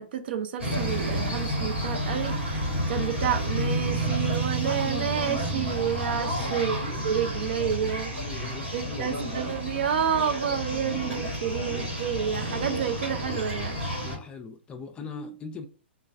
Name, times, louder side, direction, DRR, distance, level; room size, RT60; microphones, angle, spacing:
voice 1, 0.0-2.3 2.9-6.8 7.0-8.1 8.7-13.8, right 8 dB, 55° right, 0.5 m, -29 dB
sound 1, 0.6-14.2, right 1 dB, 85° right, 1.3 m, -30 dB
voice 2, 6.2-6.7 8.1-9.3 14.0-15.7, left 4 dB, 15° left, 0.4 m, -40 dB
3.0 x 2.3 x 2.3 m
figure-of-eight pair, 120°, 6 cm